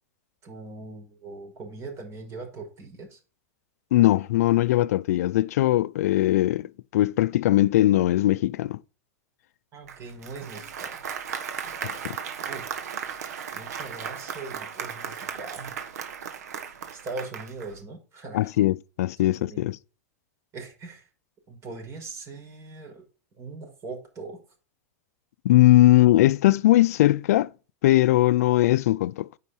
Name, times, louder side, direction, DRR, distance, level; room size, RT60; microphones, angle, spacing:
voice 1, 0.4-3.2 9.7-11.0 12.0-12.1 12.4-12.7 13.5-15.7 16.9-18.5 19.2-19.7 20.5-21.1 21.5-23.0 23.4-24.4, right 3 dB, 35° right, 5.5 m, -40 dB
voice 2, 3.9-8.8 11.8-12.2 18.3-19.8 25.4-27.5 27.8-29.3, left 15 dB, 70° left, 0.5 m, -20 dB
Applause, 9.9-17.8, right 7 dB, 80° right, 1.6 m, -36 dB
9.6 x 5.7 x 4.4 m
hypercardioid pair, 120°, 9 cm